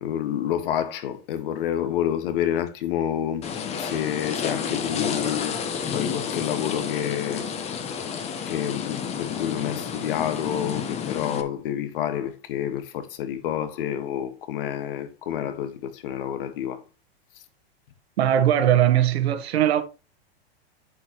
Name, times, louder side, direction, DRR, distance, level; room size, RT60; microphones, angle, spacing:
voice 1, 0.0-3.5 3.8-5.6 5.9-7.5 8.5-16.8, left 10 dB, 60° left, 1.7 m, -28 dB
sound 1, 3.4-11.4, left 7 dB, 20° left, 1.0 m, -30 dB
voice 2, 18.2-19.8, right 11 dB, 80° right, 1.7 m, -20 dB
8.7 x 7.9 x 3.1 m
supercardioid pair, 155°, 31 cm